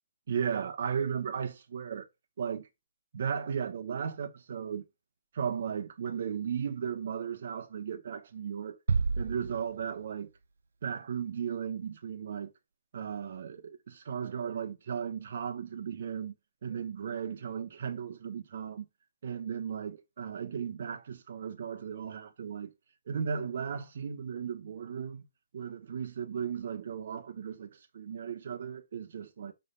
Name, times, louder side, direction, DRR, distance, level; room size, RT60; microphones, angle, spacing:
voice 1, 0.3-2.1 2.4-2.7 3.1-4.8 5.3-8.8 9.2-10.3 10.8-12.5 12.9-16.3 16.6-18.9 19.2-22.7 23.1-25.2 25.5-29.5, right 7 dB, 40° right, 0.9 m, -36 dB
sound 1, 8.9-10.4, right 4 dB, 70° right, 0.4 m, -31 dB
6.3 x 3.3 x 5.4 m
hypercardioid pair, 180°, 0 cm